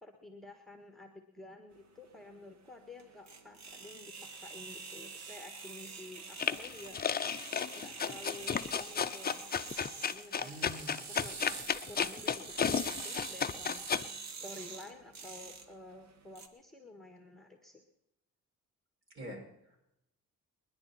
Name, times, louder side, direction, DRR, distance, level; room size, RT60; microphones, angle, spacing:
voice 1, 0.0-7.0 7.7-9.5 10.1-10.5 10.8-13.9 14.2-17.9, left 2 dB, ahead, 4 dB, 1.7 m, -51 dB
sound 1, 1.8-16.5, right 5 dB, 65° right, 1.8 m, -46 dB
sound 2, 6.4-14.0, left 7 dB, 30° left, 0.7 m, -33 dB
voice 2, 10.4-11.0 19.1-19.8, equal, 40° right, 0 dB, 6.3 m, -46 dB
30.0 x 10.5 x 4.3 m, 0.83 s
cardioid pair, 90°, 30 cm